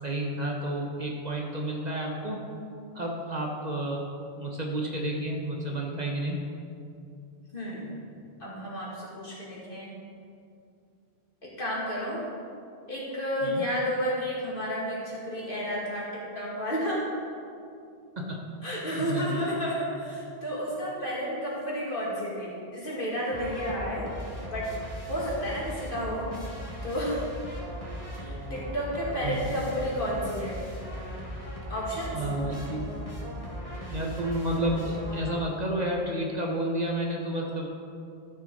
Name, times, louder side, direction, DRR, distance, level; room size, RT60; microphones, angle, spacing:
voice 1, 0.0-2.4 2.9-4.0 4.4-6.4 13.4-13.6 18.2-18.4 18.7-19.5 29.2-29.6 32.1-32.9 33.9-37.7, right 1 dB, 45° right, 0 dB, 1.0 m, -31 dB
voice 2, 7.5-7.9 8.4-9.9 11.4-12.2 12.9-17.0 18.6-24.1 24.5-24.7 25.1-26.2 26.8-27.2 28.2-30.6 31.7-32.3, equal, 55° left, -6 dB, 2.5 m, -31 dB
sound 1, 23.3-35.7, equal, 35° left, 1.9 m, -38 dB
13.0 x 6.2 x 4.1 m, 2.5 s
omnidirectional pair, 1.1 m